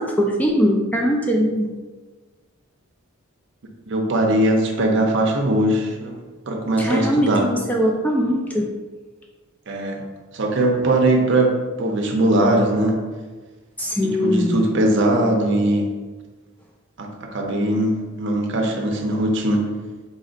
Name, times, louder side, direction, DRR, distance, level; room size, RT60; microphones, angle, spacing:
voice 1, 0.0-1.7 6.8-8.7 13.8-14.6, equal, 5° left, 0 dB, 0.3 m, -21 dB
voice 2, 3.9-6.2 6.5-7.5 9.7-10.0 10.3-13.0 14.0-15.9 17.0-19.7, right 1 dB, 55° right, 2 dB, 0.6 m, -20 dB
4.0 x 2.5 x 3.9 m, 1.3 s
head